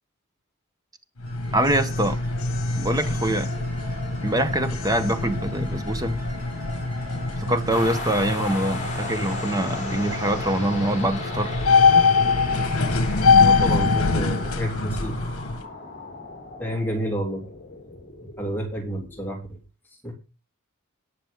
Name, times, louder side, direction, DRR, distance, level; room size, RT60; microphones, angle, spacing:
sound 1, 1.2-15.6, left 4 dB, 65° left, 1.8 m, -24 dB
sound 2, 1.2-16.0, left 2 dB, 40° right, 4.9 m, -41 dB
voice 1, 1.5-2.2 2.7-3.5 4.2-6.2 7.4-11.6, right 1 dB, 15° right, 1.2 m, -24 dB
sound 3, 7.7-19.3, left 2 dB, 35° left, 4.6 m, -36 dB
voice 2, 13.4-15.2 16.6-17.5 18.4-19.6 20.0-20.1, right 1 dB, 10° left, 3.2 m, -30 dB
18.5 x 6.7 x 3.8 m
head